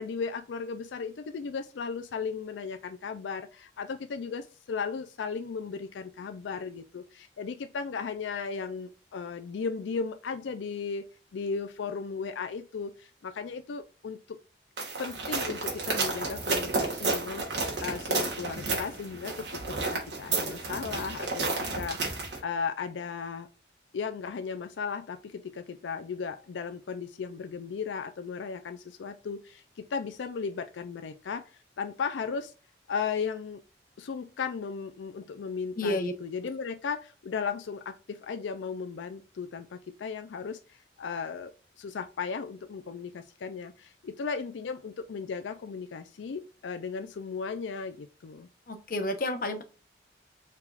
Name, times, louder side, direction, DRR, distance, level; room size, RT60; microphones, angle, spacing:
voice 1, 0.0-14.4 15.0-23.5 23.9-31.4 31.8-32.5 32.9-33.6 34.0-41.5 41.8-48.5, left 5 dB, 90° left, 9 dB, 0.4 m, -36 dB
sound 1, 14.8-22.4, right 3 dB, 75° right, 1.8 m, -31 dB
voice 2, 35.8-36.1 48.7-49.6, left 1 dB, 50° left, 7 dB, 0.7 m, -30 dB
4.7 x 3.5 x 2.4 m, 0.34 s
head